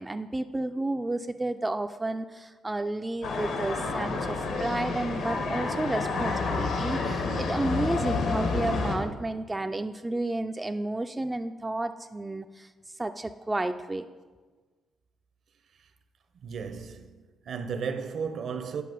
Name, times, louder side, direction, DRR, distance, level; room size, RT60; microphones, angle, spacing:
voice 1, 0.0-12.7 13.0-14.1, right 2 dB, 15° right, 0.3 m, -31 dB
sound 1, 3.2-9.0, left 3 dB, 75° left, 1.3 m, -29 dB
voice 2, 16.4-17.1 17.5-18.8, right 6 dB, 60° right, 0.7 m, -34 dB
9.3 x 5.6 x 5.4 m
cardioid pair, 90°, 0 cm